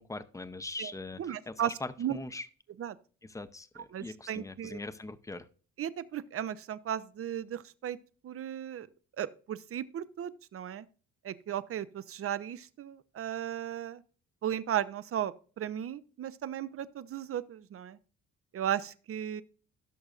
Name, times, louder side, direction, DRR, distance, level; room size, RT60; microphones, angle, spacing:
voice 1, 0.0-2.5 3.2-5.5, left 2 dB, 10° left, 0.6 m, -41 dB
voice 2, 1.2-1.7 2.0-2.2 2.8-3.0 3.9-4.8 5.8-8.0 8.2-8.9 9.2-10.9 11.2-14.0 14.4-18.0 18.5-19.4, right 10 dB, 50° right, 0.6 m, -35 dB
16.5 x 6.3 x 2.4 m
cardioid pair, 90°, 30 cm